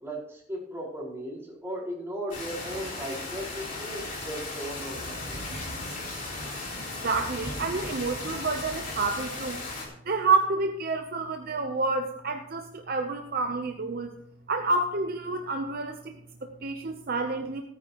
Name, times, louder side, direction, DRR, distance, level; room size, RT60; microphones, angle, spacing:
voice 1, 0.0-5.4, equal, 10° right, -7 dB, 5.0 m, -37 dB
sound 1, 2.3-9.9, left 2 dB, 45° left, 3.5 m, -36 dB
voice 2, 7.0-9.6 10.0-14.1 14.5-17.6, right 3 dB, 50° right, 4 dB, 0.8 m, -29 dB
17.5 x 9.4 x 3.0 m, 0.71 s
head